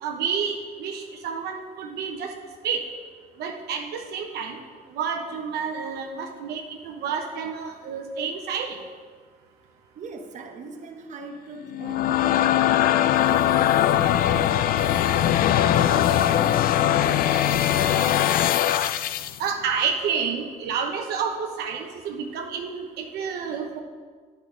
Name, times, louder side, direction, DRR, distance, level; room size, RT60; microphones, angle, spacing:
voice 1, 0.0-2.3 2.6-2.8 3.4-4.6 4.9-8.8 19.4-23.8, right 6 dB, 75° right, 3 dB, 0.9 m, -29 dB
voice 2, 9.9-15.5 15.8-18.1, right 3 dB, 45° right, 4 dB, 1.0 m, -40 dB
sound 1, 11.7-19.4, left 11 dB, 60° left, 0.4 m, -21 dB
8.7 x 5.4 x 6.2 m, 1.6 s
cardioid pair, 110°, 17 cm